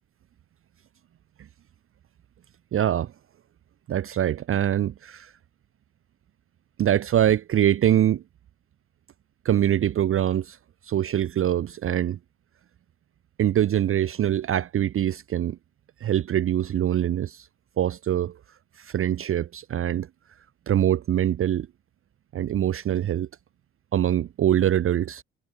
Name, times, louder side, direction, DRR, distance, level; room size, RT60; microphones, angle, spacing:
voice 1, 2.7-3.1 3.9-5.3 6.8-8.2 9.4-10.6 10.8-12.2 13.4-15.6 16.0-17.5 17.8-20.1 20.7-21.7 22.3-23.3 23.9-25.2, right 11 dB, 40° right, 0.6 m, -24 dB
hypercardioid pair, 50°, 35 cm